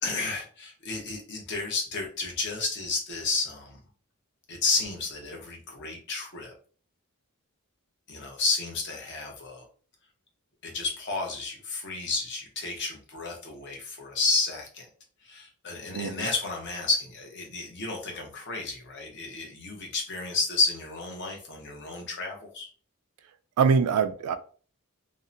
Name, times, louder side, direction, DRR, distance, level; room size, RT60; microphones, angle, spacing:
voice 1, 0.0-3.8 4.5-6.5 8.1-9.6 10.6-14.9 15.2-22.7, left 3 dB, 50° left, 0.7 m, -31 dB
voice 2, 15.9-16.3 23.6-24.4, right 6 dB, 80° right, 0.3 m, -23 dB
2.7 x 2.1 x 2.5 m
head